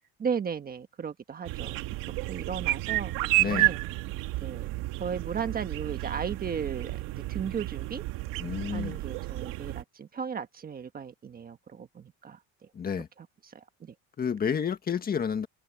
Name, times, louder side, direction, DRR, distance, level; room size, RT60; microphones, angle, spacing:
voice 1, 0.2-1.8 2.3-3.2 3.5-3.8 4.4-4.7 5.0-7.0 7.3-8.0 8.7-12.4 13.5-13.9, right 7 dB, 25° right, 1.4 m, -35 dB
sound 1, 1.5-9.8, right 19 dB, 80° right, 2.0 m, -31 dB
voice 2, 3.4-3.7 8.4-9.0 12.7-13.1 14.2-15.5, left 7 dB, 25° left, 1.7 m, -30 dB
cardioid pair, 145°, 33 cm